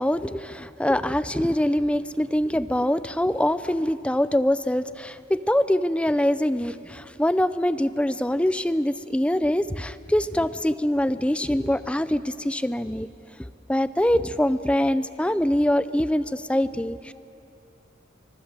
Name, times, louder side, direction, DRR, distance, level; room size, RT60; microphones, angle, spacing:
voice 1, 0.0-13.1 13.7-17.1, left 1 dB, 5° left, 14 dB, 0.5 m, -24 dB
24.5 x 23.0 x 7.6 m, 2.7 s
head